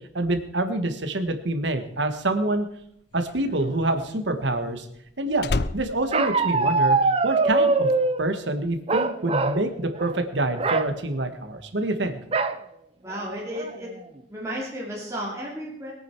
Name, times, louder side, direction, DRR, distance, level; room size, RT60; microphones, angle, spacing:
voice 1, 0.1-2.7 3.1-4.8 5.2-5.5 5.7-7.0 7.2-7.9 8.2-12.2, right 2 dB, 70° right, 8 dB, 1.6 m, -26 dB
Slam, 2.4-7.2 7.5-7.9, left 3 dB, 55° left, 0.6 m, -32 dB
Bark, 6.1-8.2 8.9-9.6 9.9-10.2 10.5-10.9 12.3-12.6 13.1-13.2 13.5-14.0, right 3 dB, 30° right, 0.7 m, -22 dB
voice 2, 13.0-13.9 14.3-15.9, equal, 15° right, -5 dB, 2.7 m, -33 dB
21.5 x 9.0 x 4.6 m, 0.74 s
head